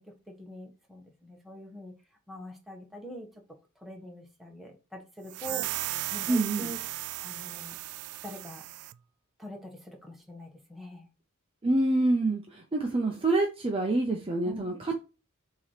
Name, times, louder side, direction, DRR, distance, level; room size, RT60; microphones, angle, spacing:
voice 1, 0.1-1.9 2.3-3.3 3.8-6.8 7.2-7.8 8.2-8.7 9.4-11.1 14.4-14.7, left 1 dB, ahead, 1.2 m, -44 dB
sound 1, 5.3-9.0, right 16 dB, 85° right, 0.3 m, -36 dB
voice 2, 6.3-6.7 11.6-15.0, right 2 dB, 25° right, 0.6 m, -27 dB
6.9 x 2.9 x 5.0 m
head